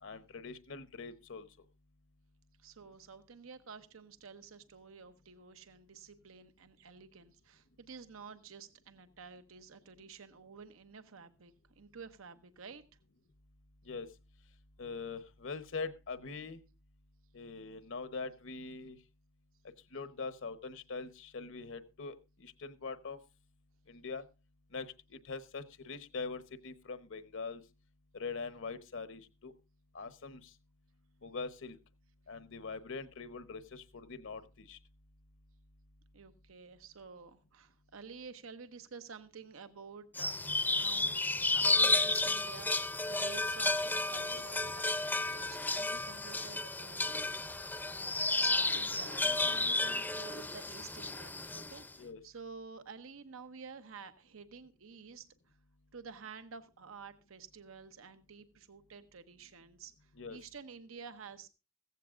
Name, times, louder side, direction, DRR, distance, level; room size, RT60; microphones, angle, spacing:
voice 1, 0.0-1.5 13.9-14.1 14.8-16.6 17.3-19.0 19.9-23.2 23.9-24.2 24.7-27.6 28.1-29.5 29.9-30.5 31.2-31.8 32.3-34.8 44.3-44.4 52.0-52.2 60.1-60.4, left 4 dB, 65° left, 1.0 m, -43 dB
voice 2, 2.6-12.8 36.1-40.5 40.8-41.2 41.5-47.4 48.4-55.6 55.9-61.5, right 5 dB, 85° right, 0.9 m, -51 dB
sound 1, 40.2-51.9, left 2 dB, 10° left, 0.6 m, -32 dB
15.5 x 15.0 x 2.5 m
head